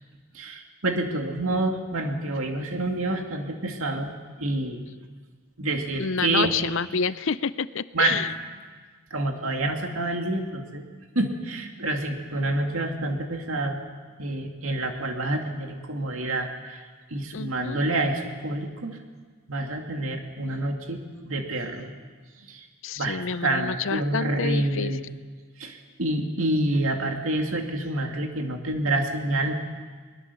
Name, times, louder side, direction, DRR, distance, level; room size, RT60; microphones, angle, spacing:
voice 1, 0.3-4.1 4.4-4.8 5.6-6.5 7.9-8.2 9.1-10.8 11.2-13.8 14.2-16.8 17.1-19.0 19.5-21.0 21.3-21.9 22.5-22.7 23.0-25.0 25.6-29.5, right 2 dB, 75° right, 3 dB, 2.3 m, -27 dB
voice 2, 6.0-8.3 17.3-17.8 22.8-25.0, left 6 dB, 65° left, 16 dB, 0.6 m, -28 dB
22.0 x 20.5 x 7.0 m, 1.5 s
head